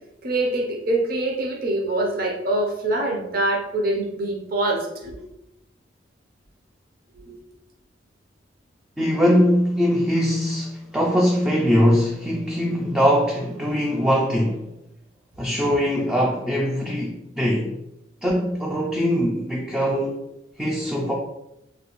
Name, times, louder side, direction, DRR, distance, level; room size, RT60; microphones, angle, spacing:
voice 1, 0.2-5.2 7.2-7.4, right 2 dB, 50° right, 0.6 m, -24 dB
voice 2, 9.0-14.7 15.4-17.8 18.2-20.2 20.6-21.1, equal, 5° right, 0.3 m, -21 dB
3.3 x 2.3 x 3.0 m
head